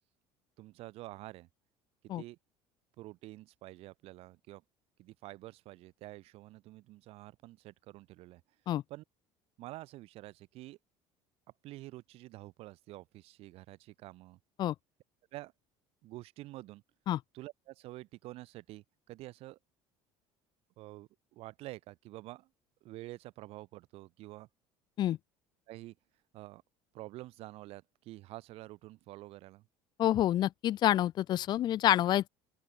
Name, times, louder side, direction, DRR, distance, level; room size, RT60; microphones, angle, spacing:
voice 1, 0.6-1.5 2.2-2.4 3.0-4.6 5.0-8.4 8.9-9.0 9.6-10.8 11.6-14.4 15.3-15.5 16.0-16.8 17.3-19.6 20.8-22.5 22.8-24.5 25.7-25.9 26.3-26.6 26.9-29.6, right 18 dB, 60° right, 5.1 m, -48 dB
voice 2, 30.0-32.3, left 12 dB, 40° left, 0.5 m, -28 dB
open air
cardioid pair, 150°, 12 cm